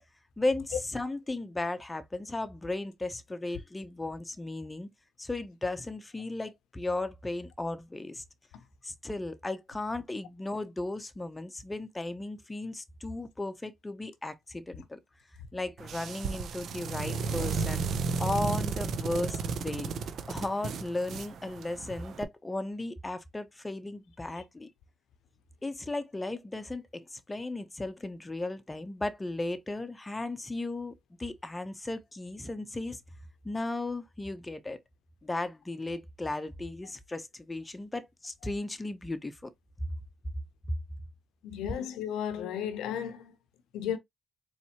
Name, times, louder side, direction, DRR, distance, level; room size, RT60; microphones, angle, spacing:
voice 1, 0.4-4.9 5.2-8.2 8.8-15.0 15.5-17.8 18.2-19.9 20.3-24.7 25.6-30.9 31.2-33.0 33.4-34.8 35.2-39.5, left 2 dB, 15° left, 0.8 m, -35 dB
sound 1, 15.8-22.2, right 5 dB, 65° right, 0.7 m, -33 dB
voice 2, 41.4-43.3 43.7-44.0, left 9 dB, 85° left, 0.6 m, -34 dB
4.3 x 3.2 x 2.9 m
cardioid pair, 90°, 0 cm